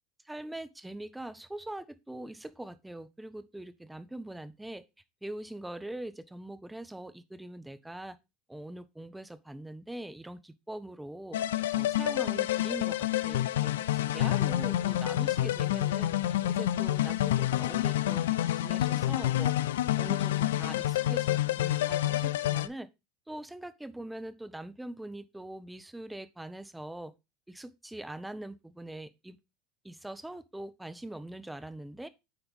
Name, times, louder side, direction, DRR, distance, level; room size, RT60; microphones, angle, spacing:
voice 1, 0.2-4.8 5.2-8.2 8.5-11.4 11.7-19.5 20.0-22.9 23.3-27.1 27.5-29.4 29.8-32.1, right 1 dB, 5° right, 0.7 m, -42 dB
sound 1, 11.3-22.7, left 14 dB, 80° left, 0.3 m, -28 dB
8.1 x 4.5 x 3.5 m
hypercardioid pair, 90°, 0 cm